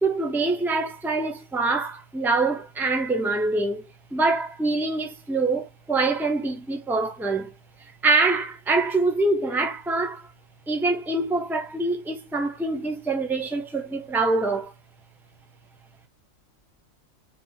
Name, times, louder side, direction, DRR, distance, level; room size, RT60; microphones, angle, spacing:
voice 1, 0.0-3.8 4.1-7.5 8.0-10.3 10.7-14.7, right 3 dB, ahead, 0.7 m, -25 dB
4.1 x 4.1 x 2.4 m
omnidirectional pair, 1.3 m